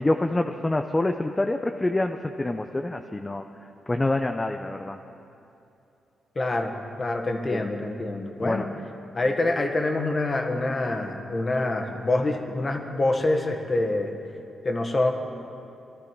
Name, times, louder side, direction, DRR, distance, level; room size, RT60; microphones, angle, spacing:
voice 1, 0.0-3.4 3.9-5.0 7.5-7.6 8.4-8.7, left 2 dB, 20° left, 5 dB, 0.6 m, -26 dB
voice 2, 6.3-6.7 7.0-8.7 9.1-14.1 14.6-15.1, left 2 dB, 35° left, 4 dB, 1.6 m, -26 dB
20.0 x 13.0 x 4.6 m, 2.8 s
cardioid pair, 85°, 0 cm